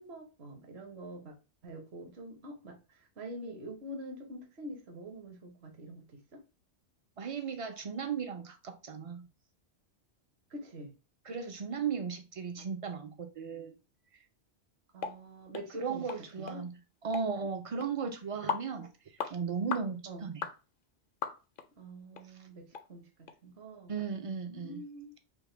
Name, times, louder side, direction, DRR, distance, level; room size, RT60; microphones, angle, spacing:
voice 1, 0.0-1.3 1.6-6.4 10.5-10.9 14.9-16.1 16.4-16.7 20.1-20.3 21.8-25.2, right 1 dB, 65° right, 1.2 m, -46 dB
voice 2, 7.2-9.3 11.3-13.8 14.1-14.2 15.7-16.7 17.0-20.5 23.9-24.8, right 6 dB, 50° right, 0.4 m, -36 dB
sound 1, 15.0-15.2 15.5-15.7 16.1-16.2 16.5-16.6 17.1-17.3 17.8-17.9 18.5-18.7 19.2-19.3 19.7-19.9 20.4-20.6 21.2-21.7 22.1-22.2 22.7-22.8 23.3-23.4, left 6 dB, 60° left, 0.6 m, -36 dB
5.1 x 2.2 x 3.2 m
omnidirectional pair, 1.2 m